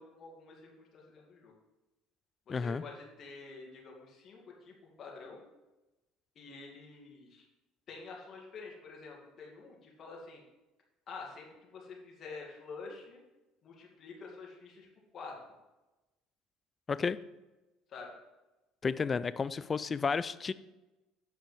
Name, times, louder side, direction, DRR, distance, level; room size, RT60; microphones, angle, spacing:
voice 1, 0.0-1.5 2.5-5.4 6.4-7.5 7.9-10.4 11.1-13.2 13.6-14.9 15.1-15.3 17.9-18.2, left 4 dB, 45° left, -1 dB, 2.3 m, -48 dB
voice 2, 2.5-2.8 16.9-17.2 18.8-20.5, left 5 dB, 30° left, 15 dB, 0.4 m, -32 dB
7.6 x 5.1 x 4.6 m, 1.0 s
supercardioid pair, 85°, 0 cm